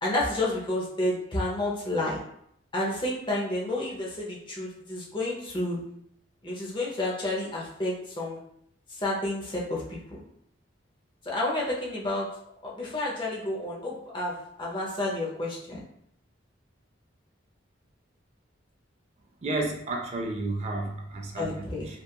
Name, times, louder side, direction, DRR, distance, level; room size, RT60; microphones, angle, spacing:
voice 1, 0.0-2.2 2.7-5.8 6.4-8.4 8.9-10.2 11.2-12.3 12.6-15.8 21.4-21.9, left 1 dB, 25° left, 0.6 m, -30 dB
voice 2, 19.4-21.7, right 2 dB, 35° right, 0.3 m, -31 dB
2.8 x 2.3 x 2.2 m
head